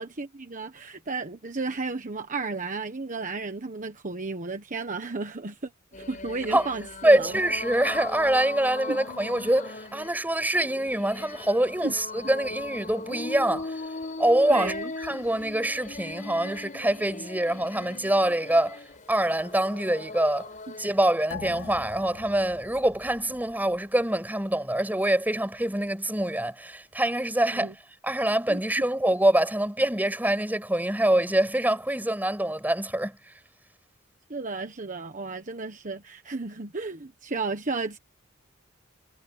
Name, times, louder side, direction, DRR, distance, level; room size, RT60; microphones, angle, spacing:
voice 1, 0.0-5.7 6.0-7.4 8.9-9.0 11.8-11.9 14.5-14.9 20.7-20.8 27.5-27.7 28.5-28.8 34.3-38.0, right 3 dB, 40° right, 1.3 m, -33 dB
sound 1, 5.9-20.9, left 3 dB, 40° left, 4.6 m, -39 dB
voice 2, 7.0-13.8 14.2-14.7 15.0-18.8 19.1-20.5 20.8-27.7 28.0-33.2, right 1 dB, 10° right, 6.0 m, -25 dB
sound 2, 21.3-24.2 24.6-24.7, left 5 dB, 65° left, 2.8 m, -43 dB
head